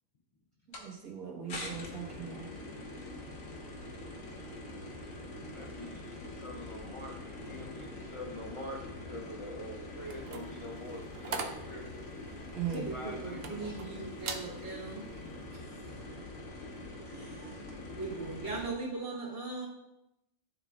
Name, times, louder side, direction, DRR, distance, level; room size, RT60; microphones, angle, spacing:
sound 1, 0.7-0.9 1.5-18.7, left 2 dB, 70° left, 1.4 m, -44 dB
voice 1, 0.8-2.5 12.5-12.9, right 8 dB, 90° right, -2 dB, 1.8 m, -39 dB
voice 2, 5.5-11.9 12.9-13.8, left 1 dB, 50° left, -2 dB, 0.3 m, -45 dB
sound 2, 10.0-13.9 14.2-14.5 15.0-15.2, right 5 dB, 60° right, 0.7 m, -41 dB
voice 3, 12.7-15.0 15.5-15.6 17.1-17.7 17.9-19.7, right 3 dB, 40° right, -5 dB, 1.7 m, -39 dB
10.5 x 4.0 x 2.4 m, 0.88 s
omnidirectional pair, 1.5 m